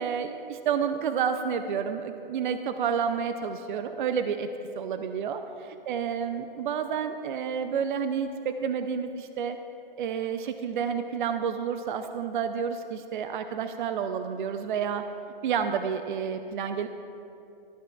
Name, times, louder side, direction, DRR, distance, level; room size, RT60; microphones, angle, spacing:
voice 1, 0.0-9.6 10.0-15.1 15.4-16.9, right 7 dB, 55° right, 8 dB, 0.6 m, -30 dB
17.0 x 13.0 x 2.5 m, 2.7 s
hypercardioid pair, 140°, 30 cm